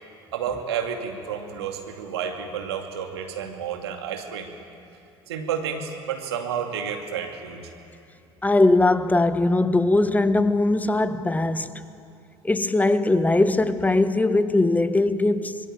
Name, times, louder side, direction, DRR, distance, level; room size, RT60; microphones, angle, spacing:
voice 1, 0.3-4.5 5.3-7.7, right 7 dB, 75° right, 2.6 m, -30 dB
voice 2, 8.4-11.7 12.4-15.6, left 2 dB, 10° left, 1.4 m, -20 dB
26.0 x 21.5 x 9.1 m
figure-of-eight pair, 60°, 14 cm